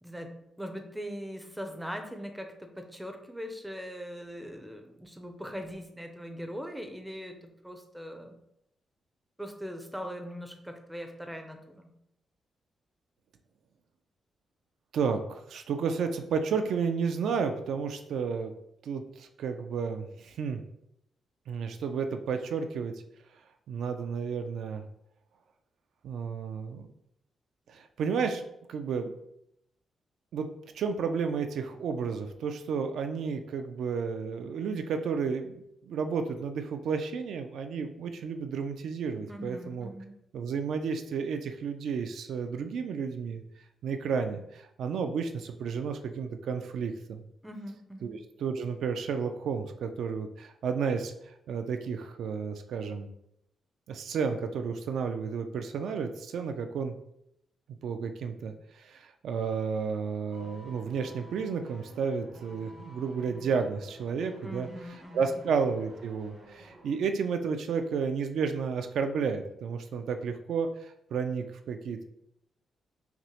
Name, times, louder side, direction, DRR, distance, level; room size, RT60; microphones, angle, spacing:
voice 1, 0.0-8.4 9.4-11.9 39.3-40.1 47.4-48.2 64.4-65.4, equal, 5° right, 5 dB, 0.4 m, -41 dB
voice 2, 14.9-18.5 18.8-20.6 21.5-23.0 23.7-24.8 26.0-26.9 27.7-29.1 30.3-30.5 30.7-39.9 40.3-43.4 43.8-47.2 48.0-53.1 53.9-56.9 57.8-64.7 65.1-72.0, right 6 dB, 70° right, 7 dB, 0.3 m, -32 dB
sound 1, 60.3-67.0 67.3-67.4, right 1 dB, 50° right, 0.9 m, -52 dB
5.7 x 2.0 x 2.9 m, 0.78 s
wide cardioid pair, 175°, 0 cm